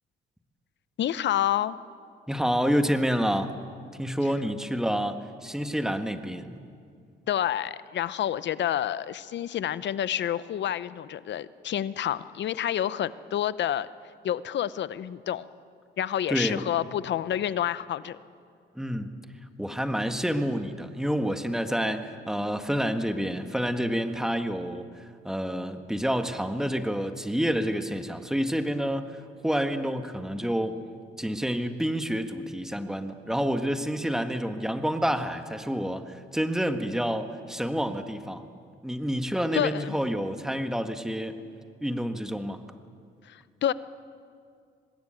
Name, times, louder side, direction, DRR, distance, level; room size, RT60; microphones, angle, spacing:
voice 1, 1.0-1.8 7.3-13.9 14.2-15.4 16.0-18.2 39.5-40.0 43.3-43.7, left 11 dB, 65° left, 16 dB, 0.8 m, -28 dB
voice 2, 2.3-3.5 4.0-6.6 16.3-16.6 18.7-19.1 19.6-30.8 31.2-38.4 38.8-41.4 41.8-42.6, equal, 5° right, 7 dB, 1.7 m, -28 dB
25.0 x 20.0 x 9.0 m, 2.3 s
cardioid pair, 90°, 20 cm